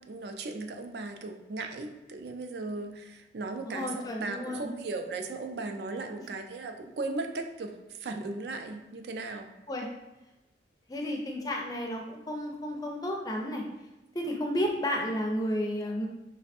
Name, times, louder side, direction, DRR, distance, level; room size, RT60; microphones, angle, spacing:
voice 1, 0.1-9.5, right 3 dB, 65° right, 5 dB, 0.4 m, -37 dB
voice 2, 3.6-4.7 6.2-6.3 9.7-9.9 10.9-13.6 14.1-16.1, equal, 20° left, 1 dB, 0.4 m, -32 dB
3.2 x 2.1 x 4.2 m, 1.0 s
head